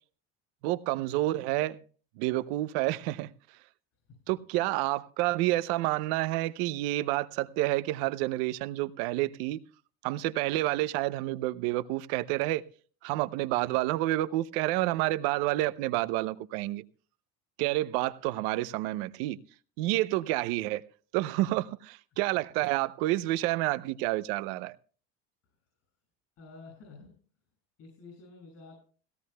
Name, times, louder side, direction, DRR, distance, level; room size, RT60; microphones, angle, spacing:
voice 1, 0.6-1.8 2.2-3.6 4.3-9.6 10.0-12.6 13.0-16.8 17.6-19.4 19.8-20.8 21.1-24.8, right 17 dB, 80° right, 0.7 m, -29 dB
voice 2, 26.4-27.2 27.8-28.7, left 3 dB, 55° left, 6.7 m, -51 dB
18.0 x 17.0 x 2.2 m
supercardioid pair, 115°, 29 cm